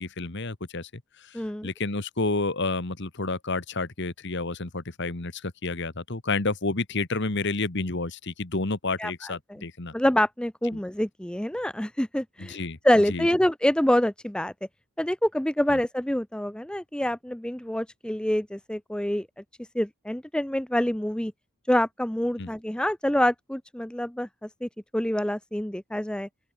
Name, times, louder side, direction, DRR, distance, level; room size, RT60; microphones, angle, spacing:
voice 1, 0.0-9.9 12.4-12.8 13.1-13.3 15.7-15.8 22.4-22.5, left 3 dB, 50° left, 1.5 m, -30 dB
voice 2, 1.3-1.7 9.0-9.6 9.9-12.6 12.8-14.5 15.0-19.3 19.7-21.3 21.7-26.3, left 1 dB, 5° left, 0.5 m, -26 dB
open air
head